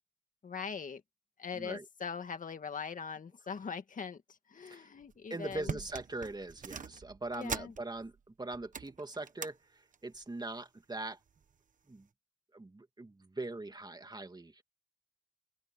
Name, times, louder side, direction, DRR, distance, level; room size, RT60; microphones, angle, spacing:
voice 1, 0.4-1.0 1.4-5.8 7.3-7.7, left 6 dB, 75° left, 2.0 m, -41 dB
voice 2, 1.5-1.9 4.6-4.9 5.3-11.2 11.9-12.1 12.5-14.6, right 2 dB, 30° right, 2.5 m, -42 dB
sound 1, 5.0-5.1 5.5-8.2 8.5-9.6 9.9-10.3 11.1-11.5 12.0-12.1, right 6 dB, 70° right, 1.1 m, -43 dB
open air
cardioid pair, 60°, 14 cm